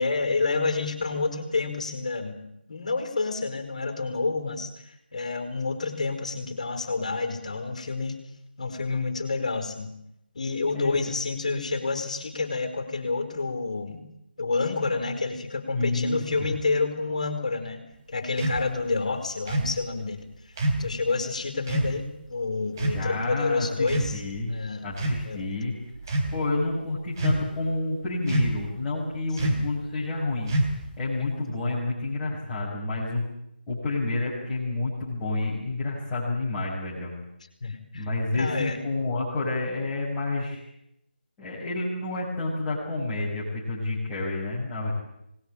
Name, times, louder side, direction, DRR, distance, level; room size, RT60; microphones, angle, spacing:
voice 1, 0.0-2.4 2.7-8.2 8.6-9.9 10.3-14.0 14.4-17.8 18.1-20.2 20.8-24.2 24.5-24.9 25.2-25.4 29.4-29.5 31.1-31.4 37.6-38.9, left 3 dB, 40° left, 8 dB, 4.7 m, -29 dB
voice 2, 10.7-11.1 15.7-16.5 22.8-24.5 24.8-25.8 26.3-30.5 31.0-33.2 33.7-37.1 37.9-40.6 41.4-44.9, left 2 dB, 10° left, -9 dB, 5.8 m, -29 dB
sound 1, 18.4-18.6 19.5-19.8 20.6-20.9 21.7-21.9 22.8-23.1 23.8-24.4 24.9-25.3 26.0-26.3 27.2-27.6 28.3-28.7 29.4-29.7 30.5-30.9, right 1 dB, 20° right, 3.5 m, -26 dB
25.5 x 20.5 x 9.0 m, 0.81 s
figure-of-eight pair, 160°, 6 cm